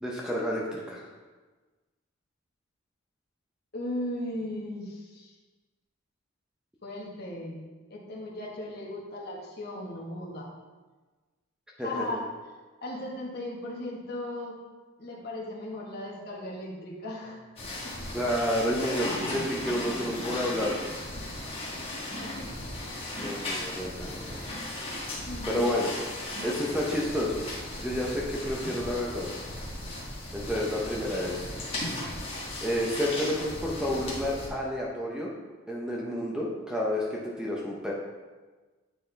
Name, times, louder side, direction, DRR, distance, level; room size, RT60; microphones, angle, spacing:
voice 1, 0.0-1.1 11.8-12.2 18.1-20.7 23.2-24.6 25.5-25.9 26.4-27.4 27.8-29.3 30.3-31.5 32.6-35.3 35.7-37.9, equal, 5° right, -3 dB, 0.6 m, -30 dB
voice 2, 3.7-5.3 6.8-7.6 7.9-10.5 11.8-12.2 12.8-14.5 15.0-17.4 17.7-18.2 22.2-22.7 25.2-25.8, left 1 dB, 50° left, -3 dB, 1.2 m, -37 dB
sound 1, 17.6-34.5, left 1 dB, 25° left, 1.3 m, -36 dB
8.9 x 4.2 x 3.3 m, 1.3 s
head